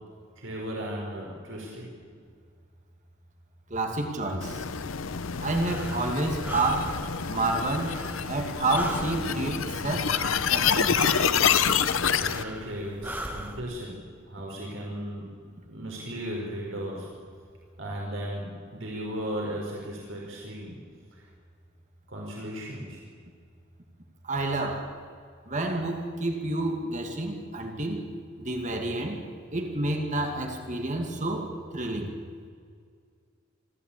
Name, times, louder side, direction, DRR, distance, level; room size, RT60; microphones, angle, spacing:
voice 1, 0.4-1.9 12.2-13.9 14.3-15.2 15.7-17.1 17.8-18.5 18.7-20.7 21.1-21.2 22.1-23.0, equal, 70° right, -2 dB, 4.6 m, -36 dB
voice 2, 3.7-4.6 5.4-7.0 7.3-8.0 8.3-10.2 10.5-11.1 24.2-24.9 25.5-28.1 28.4-29.2 29.5-32.1, right 2 dB, 40° right, 3 dB, 2.4 m, -29 dB
sound 1, 4.4-12.4, left 7 dB, 90° left, 0.8 m, -27 dB
Breathing, 5.2-13.6, right 1 dB, 10° right, 1.4 m, -40 dB
26.0 x 13.5 x 8.6 m, 2.1 s
head